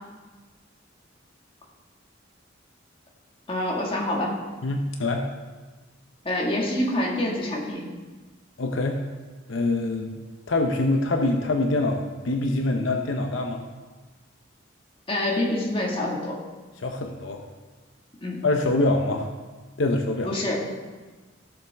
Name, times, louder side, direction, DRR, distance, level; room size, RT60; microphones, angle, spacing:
voice 1, 3.5-4.4 6.2-7.8 15.1-16.4 18.2-18.4 20.2-20.8, left 1 dB, 25° left, -2 dB, 1.9 m, -26 dB
voice 2, 4.6-5.3 8.6-9.0 9.5-10.1 10.5-13.6 16.8-17.5 18.4-19.3 19.8-20.3, left 2 dB, 70° left, 3 dB, 0.8 m, -24 dB
16.0 x 7.0 x 3.5 m, 1.3 s
head